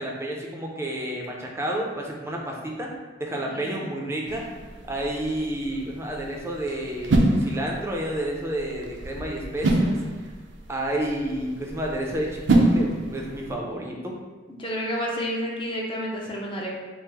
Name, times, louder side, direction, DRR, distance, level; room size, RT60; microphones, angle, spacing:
voice 1, 0.0-2.9 3.2-4.4 4.9-10.0 10.7-14.2, right 1 dB, 15° right, -1 dB, 0.5 m, -30 dB
voice 2, 3.5-3.9 14.6-16.7, equal, 30° left, -2 dB, 0.6 m, -30 dB
sound 1, 4.3-13.5, right 2 dB, 80° right, 0.5 m, -27 dB
4.7 x 2.1 x 3.4 m, 1.3 s
head